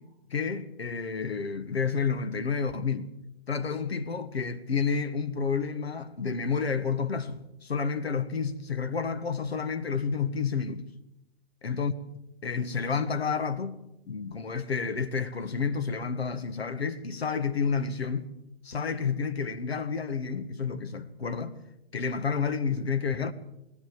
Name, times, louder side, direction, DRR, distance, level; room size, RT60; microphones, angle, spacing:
voice 1, 0.3-3.1 3.5-10.9 11.6-11.9 12.4-13.8 14.1-18.3 18.6-21.5 21.9-23.3, left 5 dB, 75° left, 1.8 m, -30 dB
20.0 x 17.0 x 7.8 m
figure-of-eight pair, 120°, 31 cm